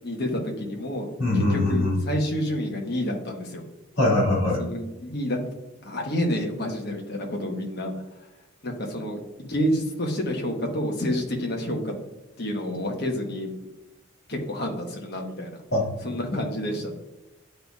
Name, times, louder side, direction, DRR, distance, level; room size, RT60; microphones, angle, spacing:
voice 1, 0.0-3.6 4.4-5.4 5.8-7.9 8.6-11.9 12.4-13.5 14.3-15.6 16.0-17.0, equal, 50° left, 1 dB, 1.1 m, -29 dB
voice 2, 1.2-2.0 4.0-4.6 15.7-15.8, left 2 dB, 70° left, -4 dB, 2.2 m, -22 dB
10.0 x 4.0 x 2.4 m, 1.0 s
head